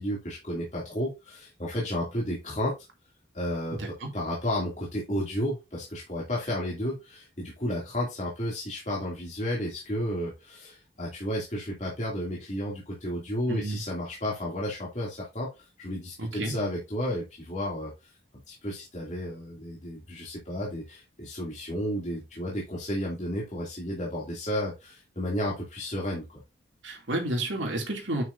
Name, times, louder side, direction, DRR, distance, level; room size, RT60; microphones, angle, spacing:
voice 1, 0.0-2.7 3.3-17.9 18.5-26.4, equal, 40° left, 2.8 m, -32 dB
voice 2, 3.8-4.1 13.5-13.8 16.2-16.5 26.8-28.2, right 1 dB, 80° right, 2.8 m, -30 dB
9.4 x 6.2 x 2.7 m
head